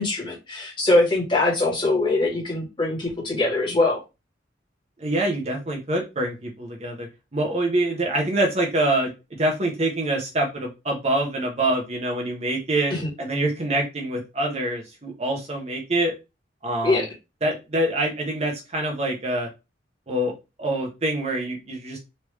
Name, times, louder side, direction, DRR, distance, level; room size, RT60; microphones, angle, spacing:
voice 1, 0.0-4.0 12.9-13.1 16.8-17.1, left 2 dB, 25° left, -2 dB, 1.2 m, -22 dB
voice 2, 5.0-7.1 7.3-9.1 9.4-12.9 13.2-16.1 16.6-17.0 17.4-19.5 20.1-20.3 20.6-22.0, right 1 dB, 35° right, 1 dB, 0.7 m, -25 dB
3.1 x 2.5 x 3.1 m, 0.26 s
head